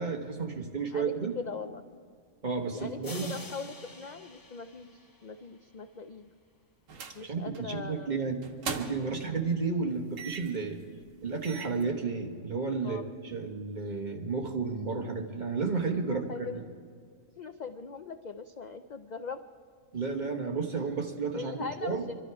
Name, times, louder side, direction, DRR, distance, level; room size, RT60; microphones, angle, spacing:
voice 1, 0.0-1.3 2.4-3.3 7.2-8.4 8.7-10.8 11.2-16.5 19.9-22.0, right 4 dB, 35° right, 3 dB, 1.4 m, -32 dB
voice 2, 0.9-1.9 2.7-6.3 7.1-8.2 12.8-13.1 16.1-16.6 17.4-19.4 21.3-22.1, left 5 dB, 65° left, 8 dB, 0.4 m, -41 dB
sound 1, 3.0-5.7, left 2 dB, 20° left, 0.6 m, -47 dB
sound 2, 6.9-7.2 7.5-7.8 8.4-9.2 10.2-10.6 11.1-11.2 11.4-11.8, right 5 dB, 75° right, 1.4 m, -38 dB
24.0 x 12.5 x 4.7 m, 2.1 s
omnidirectional pair, 1.4 m